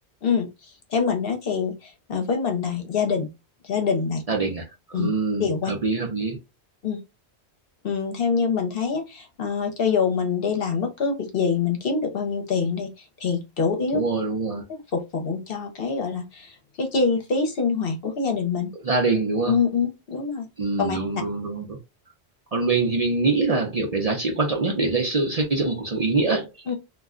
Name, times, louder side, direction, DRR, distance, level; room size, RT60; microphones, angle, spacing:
voice 1, 0.9-3.3 3.6-4.2 4.9-5.1 5.4-5.7 6.8-7.0 7.8-12.9 13.2-14.0 14.7-18.7 19.5-20.5 20.8-21.0 26.7-26.8, left 5 dB, 60° left, 0.9 m, -25 dB
voice 2, 4.3-6.4 13.9-14.6 18.8-19.6 20.6-21.8 22.5-26.7, right 3 dB, 45° right, 0.6 m, -24 dB
2.3 x 2.2 x 3.6 m
omnidirectional pair, 1.1 m